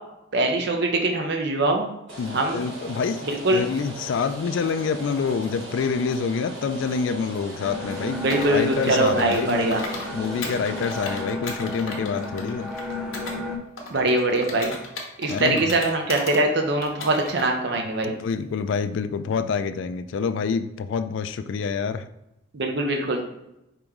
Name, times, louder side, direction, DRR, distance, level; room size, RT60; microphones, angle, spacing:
voice 1, 0.3-1.9 2.3-2.6 3.2-3.6 8.2-9.8 13.9-14.7 15.2-18.1 22.5-23.2, right 2 dB, 55° right, 3 dB, 0.6 m, -22 dB
Rain, 2.1-11.2, right 1 dB, 70° right, 1.1 m, -38 dB
voice 2, 2.2-3.2 3.5-8.2 8.5-9.9 10.1-12.7 15.3-15.7 18.0-22.1, left 5 dB, 70° left, 12 dB, 0.3 m, -27 dB
sound 1, 7.6-13.6, left 2 dB, 5° right, 0.5 m, -33 dB
Computer keyboard, 8.3-10.1 10.4-13.4 13.8-16.4 16.8-17.5, left 3 dB, 85° left, 1.0 m, -36 dB
5.0 x 3.0 x 3.5 m, 0.88 s
head